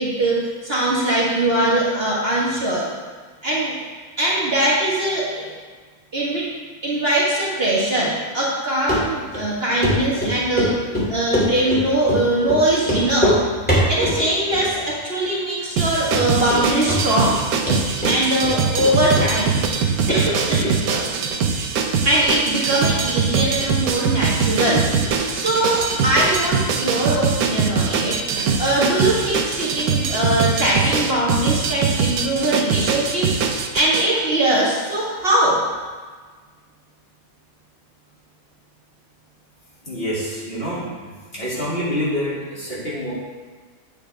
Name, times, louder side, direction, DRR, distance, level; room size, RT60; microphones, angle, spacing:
voice 1, 0.0-2.9 3.4-3.8 4.2-5.5 6.1-6.5 6.8-13.4 13.9-17.4 18.1-19.5 20.1-21.1 22.0-33.3 33.7-35.6, right 1 dB, 40° right, -6 dB, 1.8 m, -21 dB
Run, 8.9-9.0 9.3-9.4 9.8-9.9 10.2-10.7 10.9-11.8 12.1-12.2 12.5-12.6 12.8-13.4 13.7-14.2 14.5-15.0 15.2-15.3 15.8-15.9 16.1-16.6 16.9-17.4 17.7-18.9 19.2-19.3 19.6-19.7, equal, 5° left, 2.5 m, -21 dB
sound 1, 15.8-34.1, right 5 dB, 85° right, 1.2 m, -22 dB
voice 2, 39.9-43.1, equal, 40° left, -9 dB, 2.9 m, -27 dB
8.5 x 8.4 x 3.4 m, 1.5 s
omnidirectional pair, 1.5 m